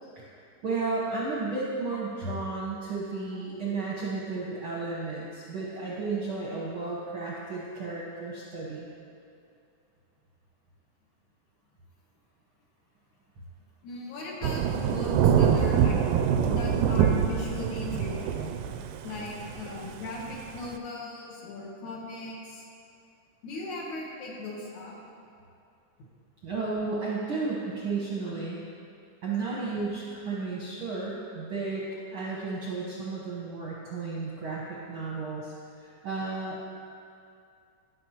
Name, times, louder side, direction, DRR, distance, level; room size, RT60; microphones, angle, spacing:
voice 1, 0.6-8.9 26.4-28.6 29.2-31.8 32.1-36.6, right 3 dB, 60° right, -5 dB, 1.3 m, -33 dB
voice 2, 13.8-16.0 16.4-18.4 19.0-22.7 23.4-24.9, left 3 dB, 70° left, -3 dB, 2.4 m, -38 dB
Thunder / Rain, 14.4-20.8, right 8 dB, 80° right, 1.8 m, -25 dB
17.0 x 6.6 x 2.9 m, 2.5 s
omnidirectional pair, 3.8 m